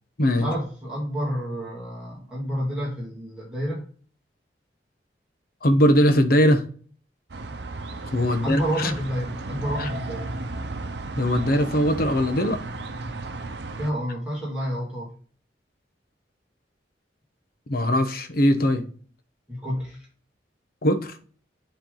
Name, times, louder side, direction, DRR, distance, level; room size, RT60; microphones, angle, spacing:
voice 1, 0.4-3.8 8.4-10.3 13.8-15.1 19.5-20.1, equal, 5° right, -6 dB, 2.1 m, -29 dB
voice 2, 5.6-6.6 8.1-8.9 9.8-9.9 11.2-12.6 17.7-18.8 20.8-21.1, equal, 55° left, 7 dB, 1.0 m, -20 dB
sound 1, 7.3-13.9, right 2 dB, 70° right, 0.8 m, -34 dB
10.0 x 3.5 x 3.9 m, 0.43 s
head